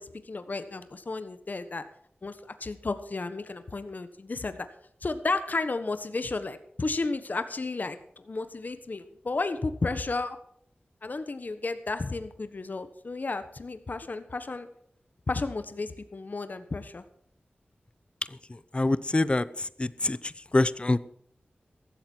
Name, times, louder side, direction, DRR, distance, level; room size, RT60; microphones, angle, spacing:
voice 1, 0.0-1.8 2.2-4.7 5.0-10.4 11.0-14.7 15.3-17.0, left 3 dB, 50° left, 10 dB, 1.3 m, -33 dB
voice 2, 18.5-21.0, left 2 dB, 30° left, 17 dB, 0.7 m, -26 dB
15.0 x 13.0 x 4.6 m, 0.67 s
wide cardioid pair, 80°, 4 cm